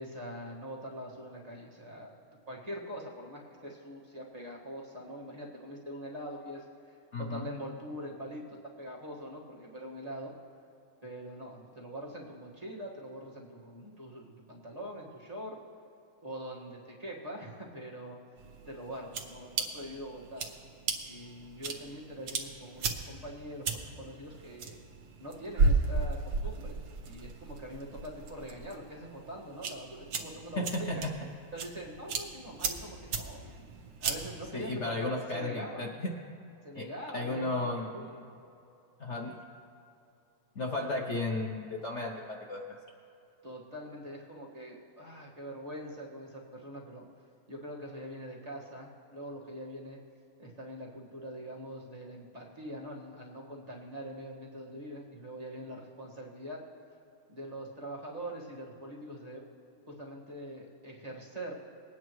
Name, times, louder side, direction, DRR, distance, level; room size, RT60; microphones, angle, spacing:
voice 1, 0.0-2.2 2.5-8.4 8.8-10.3 11.0-15.6 16.2-18.2 18.6-20.5 21.0-24.8 25.2-31.0 31.5-33.6 34.0-35.9 36.6-38.3 43.4-47.1 47.5-50.0 50.4-56.6 57.3-59.4 59.9-61.5, equal, 20° right, -4 dB, 1.3 m, -43 dB
voice 2, 7.1-7.5 30.6-31.1 34.5-36.1 36.7-36.9 37.1-37.9 39.0-39.3 40.6-42.6, left 2 dB, 90° left, 0 dB, 0.6 m, -34 dB
sound 1, 18.4-34.4, right 4 dB, 60° right, 1.3 m, -35 dB
20.5 x 9.4 x 3.1 m, 2.7 s
omnidirectional pair, 2.4 m